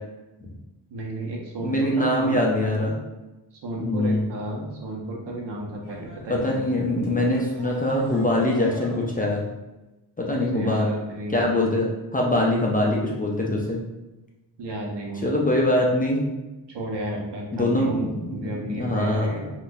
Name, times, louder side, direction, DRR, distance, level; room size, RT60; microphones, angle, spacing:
voice 1, 0.9-3.0 3.6-6.6 6.9-7.0 10.3-11.5 14.6-15.4 16.7-19.5, right 1 dB, 70° right, -1 dB, 0.9 m, -33 dB
voice 2, 1.6-2.9 3.8-4.2 6.3-9.5 10.2-10.9 11.3-13.8 15.2-16.2 17.5-19.4, left 1 dB, 20° left, -2 dB, 0.4 m, -23 dB
sound 1, 5.8-9.4, right 1 dB, 45° right, 1.2 m, -43 dB
3.6 x 2.4 x 2.6 m, 1.0 s
wide cardioid pair, 125°, 43 cm